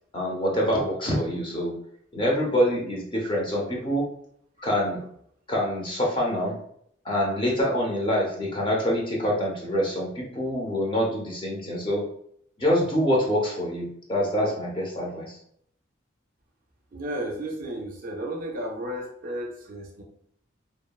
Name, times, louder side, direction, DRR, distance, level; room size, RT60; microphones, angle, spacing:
voice 1, 0.1-1.7 2.1-4.1 4.6-5.0 5.5-6.6 7.0-12.1 12.6-15.4, equal, 25° left, -3 dB, 0.5 m, -25 dB
voice 2, 16.9-20.0, right 1 dB, 45° right, 1 dB, 0.4 m, -33 dB
2.8 x 2.1 x 2.2 m, 0.68 s
head